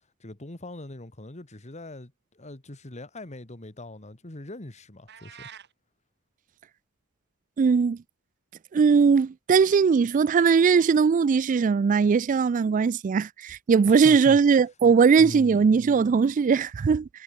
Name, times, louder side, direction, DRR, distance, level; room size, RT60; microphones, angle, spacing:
voice 1, 0.2-5.5 13.8-14.4 15.2-15.7, left 1 dB, 35° left, 1.9 m, -41 dB
sound 1, 5.1-5.7, right 9 dB, 55° right, 2.2 m, -45 dB
voice 2, 7.6-8.0 8.7-17.1, right 5 dB, 40° right, 0.3 m, -20 dB
head